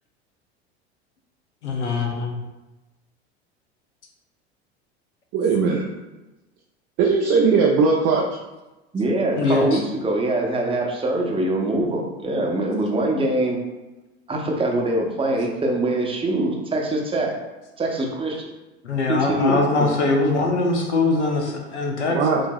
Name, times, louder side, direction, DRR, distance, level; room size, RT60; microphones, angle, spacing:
voice 1, 1.6-2.4 9.4-9.8 18.8-22.5, left 3 dB, 90° left, 1 dB, 0.8 m, -22 dB
voice 2, 5.3-5.8 7.0-8.3 22.1-22.4, right 4 dB, 45° right, -2 dB, 0.5 m, -19 dB
voice 3, 8.9-13.6 14.3-17.3 17.8-18.4 19.1-19.9, right 2 dB, 15° right, -1 dB, 0.8 m, -23 dB
4.9 x 2.5 x 2.3 m, 1.1 s
hypercardioid pair, 85°, 34 cm